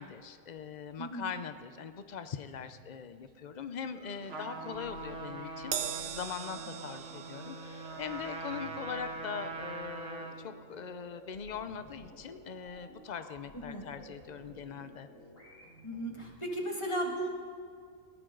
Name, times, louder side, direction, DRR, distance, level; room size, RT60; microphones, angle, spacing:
voice 1, 0.0-15.1, left 7 dB, 85° left, 10 dB, 0.4 m, -41 dB
voice 2, 1.0-1.3 13.6-13.8 15.8-17.3, right 1 dB, 20° left, 0 dB, 2.2 m, -35 dB
sound 1, 3.9-16.2, equal, 50° left, 5.5 m, -55 dB
Trumpet, 4.3-10.6, right 3 dB, 45° right, 1.5 m, -42 dB
Crash cymbal, 5.7-12.3 12.7-12.9 13.9-14.0, right 9 dB, 60° right, 1.1 m, -43 dB
20.0 x 16.5 x 3.9 m, 2.1 s
omnidirectional pair, 1.6 m